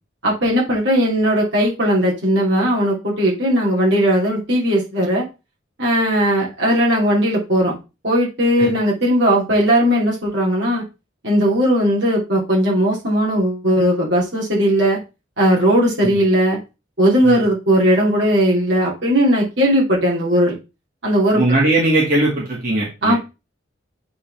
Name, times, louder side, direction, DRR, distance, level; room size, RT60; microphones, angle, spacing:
voice 1, 0.2-5.2 5.8-7.7 8.0-10.8 11.2-15.0 15.4-16.6 17.0-20.5 21.0-21.4 23.0-23.2, equal, 75° right, -4 dB, 3.1 m, -17 dB
voice 2, 21.3-23.1, right 2 dB, 50° right, -4 dB, 2.3 m, -19 dB
8.5 x 4.1 x 3.5 m, 0.28 s
head